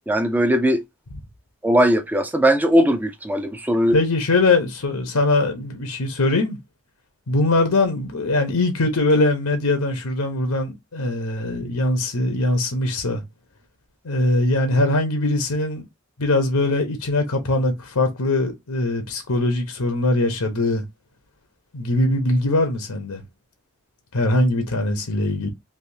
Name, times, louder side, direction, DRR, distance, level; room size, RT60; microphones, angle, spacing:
voice 1, 0.1-0.8 1.6-4.0, equal, 10° right, 0.4 m, -19 dB
voice 2, 3.9-6.6 7.3-13.2 14.0-15.8 16.2-20.8 21.7-23.2 24.1-25.5, left 2 dB, 90° left, 0.9 m, -21 dB
3.5 x 2.7 x 2.7 m
head